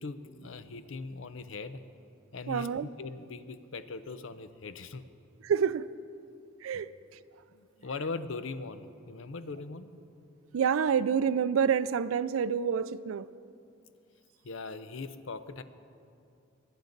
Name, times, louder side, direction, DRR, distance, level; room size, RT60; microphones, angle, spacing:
voice 1, 0.0-1.9 2.3-5.0 6.7-6.8 7.5-10.0 14.4-15.6, left 3 dB, 70° left, 12 dB, 0.6 m, -40 dB
voice 2, 2.5-2.9 5.4-5.9 6.6-6.9 10.5-13.3, right 7 dB, 80° right, 16 dB, 0.4 m, -27 dB
22.0 x 8.7 x 3.9 m, 2.5 s
head